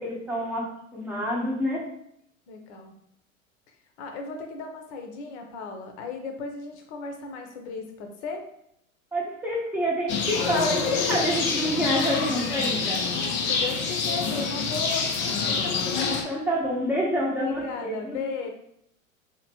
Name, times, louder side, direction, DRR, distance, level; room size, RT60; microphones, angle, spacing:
voice 1, 0.0-1.8 9.1-13.0 16.2-18.2, equal, 5° right, -3 dB, 0.8 m, -27 dB
voice 2, 2.5-2.9 4.0-8.5 13.1-15.8 16.2-16.5 17.4-18.5, left 4 dB, 55° left, 4 dB, 0.8 m, -36 dB
sound 1, 10.1-16.2, left 5 dB, 30° left, 0.4 m, -27 dB
2.9 x 2.8 x 2.9 m, 0.75 s
hypercardioid pair, 95°, 41 cm